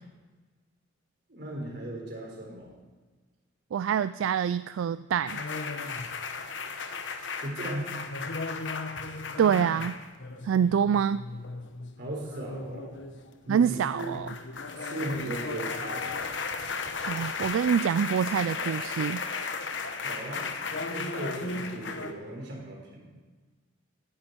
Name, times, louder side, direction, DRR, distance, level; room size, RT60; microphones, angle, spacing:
voice 1, 1.3-2.7 7.4-7.9 12.0-12.9 13.5-14.0 14.8-16.1 20.0-20.4 20.9-23.1, right 1 dB, 55° right, -1 dB, 3.9 m, -37 dB
voice 2, 3.7-5.4 9.4-9.9 10.4-11.2 13.5-14.3 17.0-19.2, right 7 dB, 80° right, 14 dB, 0.3 m, -26 dB
sound 1, 5.3-22.1, left 4 dB, 65° left, 1.0 m, -35 dB
17.5 x 9.7 x 4.5 m, 1.3 s
head